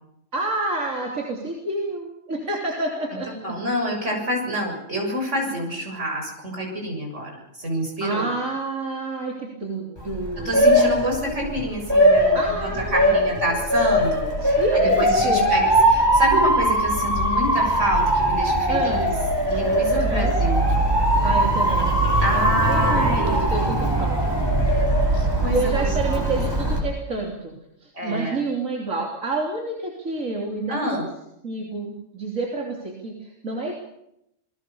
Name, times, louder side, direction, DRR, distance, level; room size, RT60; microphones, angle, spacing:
voice 1, 0.3-3.6 8.0-10.7 12.3-13.7 14.6-15.6 18.7-19.0 19.9-20.3 21.2-21.9 22.3-24.4 25.5-31.1 31.4-33.7, right 2 dB, 85° right, -1 dB, 3.7 m, -29 dB
voice 2, 3.4-8.3 10.5-19.1 19.5-20.7 22.2-23.5 25.1-26.3 28.0-28.4 30.7-31.1, equal, 65° right, 2 dB, 7.4 m, -27 dB
Motor vehicle (road) / Siren, 10.0-26.8, right 1 dB, 20° right, 5.0 m, -20 dB
28.5 x 20.5 x 7.1 m, 0.82 s
omnidirectional pair, 1.3 m